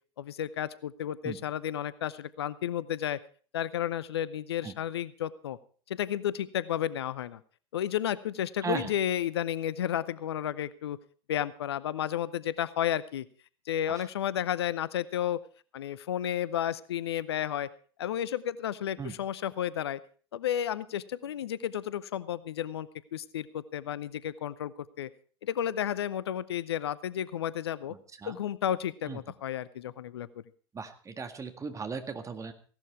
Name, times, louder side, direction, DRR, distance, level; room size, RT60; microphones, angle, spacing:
voice 1, 0.2-3.2 3.5-5.6 5.9-7.4 7.7-11.0 11.3-13.3 13.7-15.4 15.7-17.7 18.0-20.0 20.3-25.1 25.4-27.9 28.3-30.3, left 10 dB, 75° left, 19 dB, 0.6 m, -32 dB
voice 2, 30.7-32.5, right 5 dB, 25° right, 8 dB, 2.0 m, -37 dB
16.5 x 12.0 x 4.5 m, 0.41 s
figure-of-eight pair, 75°, 14 cm